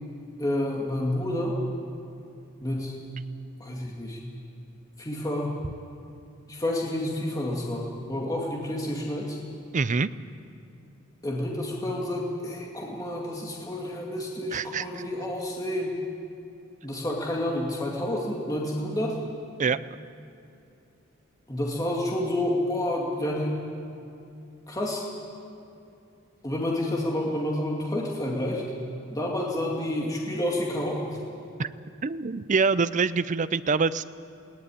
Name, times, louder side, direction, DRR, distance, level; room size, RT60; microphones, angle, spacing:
voice 1, 0.4-1.6 2.6-2.9 3.6-4.2 5.0-5.6 6.5-9.4 11.2-15.9 16.8-19.2 21.5-23.6 24.7-25.0 26.4-28.6 29.1-31.2, left 1 dB, 15° left, -2 dB, 2.3 m, -29 dB
voice 2, 9.7-10.1 14.5-15.0 19.6-19.8 31.6-31.7 32.0-34.0, right 4 dB, 35° right, 15 dB, 0.5 m, -25 dB
19.5 x 18.0 x 9.8 m, 2.7 s
head